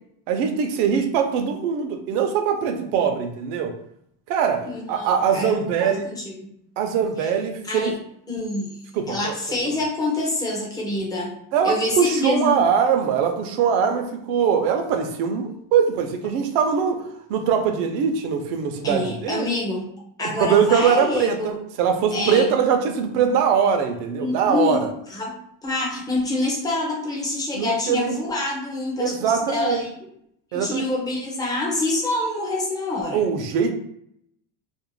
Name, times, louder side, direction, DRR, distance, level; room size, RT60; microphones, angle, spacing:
voice 1, 0.3-3.7 4.3-6.1 6.8-7.9 8.9-9.3 9.6-9.8 11.5-17.0 17.3-19.5 20.2-24.9 27.5-28.2 29.0-29.8 30.5-30.8 33.1-33.7, right 7 dB, 75° right, 5 dB, 0.6 m, -22 dB
voice 2, 4.6-6.5 7.2-7.3 7.7-7.9 8.3-8.7 9.1-11.3 11.6-12.6 18.8-19.9 20.2-21.6 22.1-22.5 24.2-24.8 25.1-25.3 25.6-29.9 30.5-33.2, left 2 dB, 10° left, -3 dB, 0.3 m, -26 dB
2.5 x 2.1 x 3.0 m, 0.71 s
cardioid pair, 150°, 44 cm